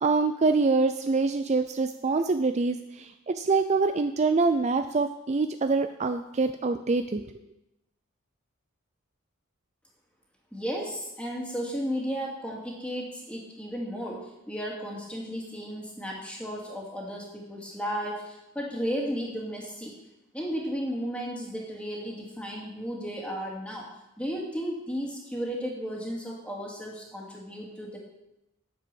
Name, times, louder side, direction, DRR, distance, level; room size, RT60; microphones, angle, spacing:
voice 1, 0.0-7.3, right 3 dB, 35° right, 8 dB, 0.4 m, -25 dB
voice 2, 10.5-19.9 20.3-23.9 24.2-28.0, equal, 5° left, -2 dB, 2.4 m, -34 dB
9.6 x 7.3 x 7.0 m, 0.90 s
head